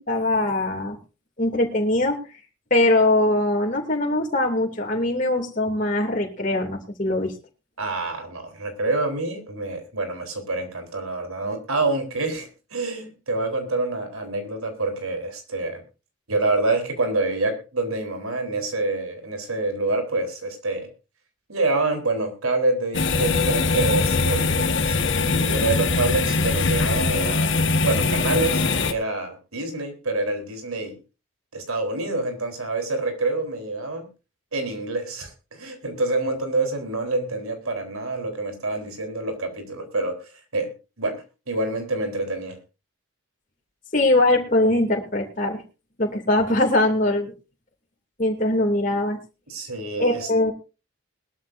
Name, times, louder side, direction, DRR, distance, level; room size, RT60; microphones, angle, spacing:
voice 1, 0.1-1.0 1.4-2.2 2.7-7.3 43.9-45.6 46.0-47.3 48.2-49.2 50.0-50.5, left 1 dB, 35° left, 1 dB, 2.7 m, -21 dB
voice 2, 7.8-15.8 16.3-20.9 21.5-28.6 28.9-31.0 31.5-34.1 34.5-42.6 49.5-50.3, right 2 dB, 85° right, 5 dB, 4.0 m, -27 dB
sound 1, 22.9-28.9, left 3 dB, 60° left, 1.6 m, -22 dB
21.0 x 13.0 x 2.7 m, 0.31 s
head